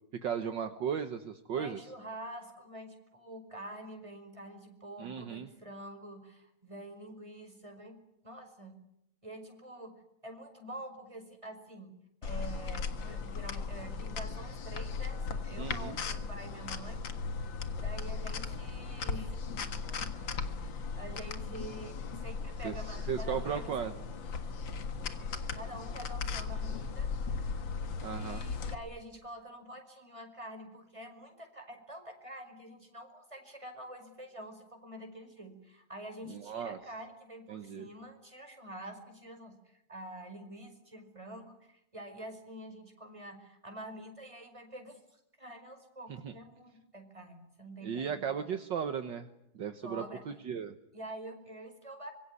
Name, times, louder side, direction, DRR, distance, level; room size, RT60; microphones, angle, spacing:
voice 1, 0.2-1.8 5.0-5.5 15.6-16.0 22.6-23.9 28.0-28.5 36.3-36.8 37.5-37.9 46.2-46.3 47.8-49.3 49.6-50.8, right 7 dB, 65° right, 8 dB, 1.8 m, -36 dB
voice 2, 1.5-8.8 9.2-11.9 12.2-17.0 17.8-20.5 21.0-23.8 25.5-27.1 28.0-48.1 49.8-50.3 50.9-52.1, right 1 dB, 15° right, 5 dB, 5.2 m, -47 dB
sound 1, 12.2-28.7, left 5 dB, 70° left, 2.4 m, -37 dB
25.5 x 23.0 x 9.8 m, 0.81 s
omnidirectional pair, 2.2 m